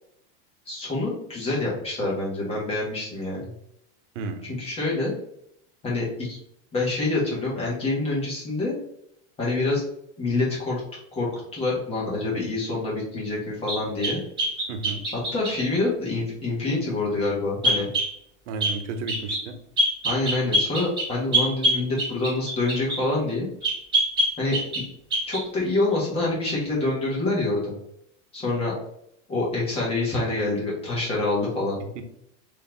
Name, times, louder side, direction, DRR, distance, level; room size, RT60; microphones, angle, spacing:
voice 1, 0.7-3.5 4.4-5.1 5.8-6.4 6.7-8.7 9.4-9.8 10.2-10.8 11.1-14.2 15.3-17.9 20.0-23.5 24.4-24.8 25.3-27.7 28.3-28.7 29.3-31.8, left 2 dB, 15° left, -5 dB, 1.5 m, -26 dB
voice 2, 4.1-4.5 14.7-15.1 18.5-19.6 31.8-32.0, right 4 dB, 85° right, 7 dB, 0.9 m, -33 dB
sound 1, 13.7-15.6 17.6-18.1 18.6-18.8 19.1-19.4 19.8-23.0 23.6-24.9 25.1-25.4, right 1 dB, 15° right, 1.6 m, -24 dB
4.2 x 3.2 x 3.9 m, 0.75 s
supercardioid pair, 175°, 36 cm